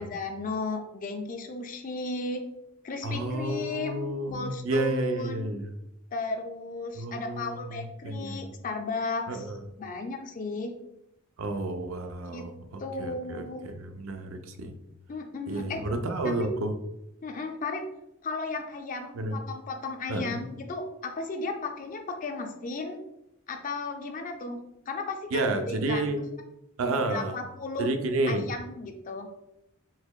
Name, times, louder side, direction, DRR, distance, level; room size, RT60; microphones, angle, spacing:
voice 1, 0.0-2.4 2.8-4.1 4.3-5.6 6.1-9.5 9.8-10.7 12.3-12.5 12.8-13.7 15.1-15.8 16.2-16.5 17.2-17.9 18.2-23.0 23.5-24.6 24.9-26.0 27.0-27.9 28.3-29.3, left 3 dB, 40° left, 5 dB, 0.4 m, -35 dB
voice 2, 3.0-5.8 6.9-8.5 9.3-9.6 11.4-14.7 15.5-16.7 19.1-19.4 20.1-20.4 25.3-26.2 26.8-27.4 27.8-28.5, right 2 dB, 75° right, 6 dB, 0.4 m, -31 dB
4.1 x 2.9 x 2.2 m, 0.84 s
head